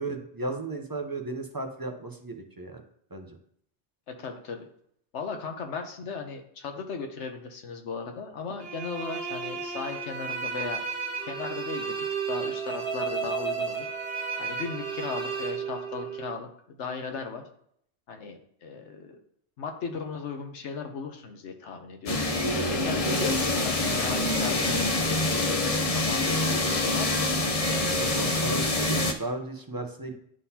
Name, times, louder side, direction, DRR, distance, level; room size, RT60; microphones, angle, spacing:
voice 1, 0.0-2.8 3.1-3.4 28.0-30.1, right 2 dB, 25° right, 4 dB, 0.5 m, -35 dB
voice 2, 4.1-4.7 5.1-10.8 11.3-11.9 12.3-13.9 14.4-17.4 18.1-19.2 19.6-22.3 22.7-27.2, left 5 dB, 75° left, 5 dB, 1.2 m, -37 dB
sound 1, 8.6-16.3, right 5 dB, 55° right, 1.1 m, -33 dB
sound 2, 22.1-29.1, left 2 dB, 40° left, 0.6 m, -26 dB
11.0 x 3.9 x 2.8 m, 0.69 s
omnidirectional pair, 1.2 m